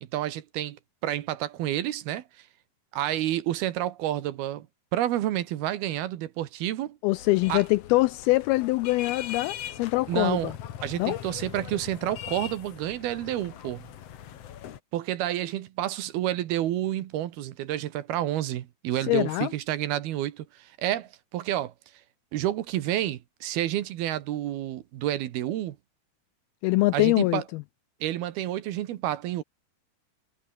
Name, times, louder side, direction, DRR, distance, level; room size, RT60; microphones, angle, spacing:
voice 1, 0.0-2.5 2.9-4.7 4.9-7.0 7.5-7.6 10.1-10.5 10.8-13.8 14.9-21.7 22.3-25.8 26.9-27.4 28.0-29.4, right 13 dB, 70° right, 3.1 m, -29 dB
voice 2, 7.0-10.5 11.0-11.2 19.1-19.5 26.6-27.6, left 20 dB, 80° left, 2.2 m, -24 dB
sound 1, 7.1-14.8, left 10 dB, 60° left, 1.6 m, -41 dB
omnidirectional pair, 4.8 m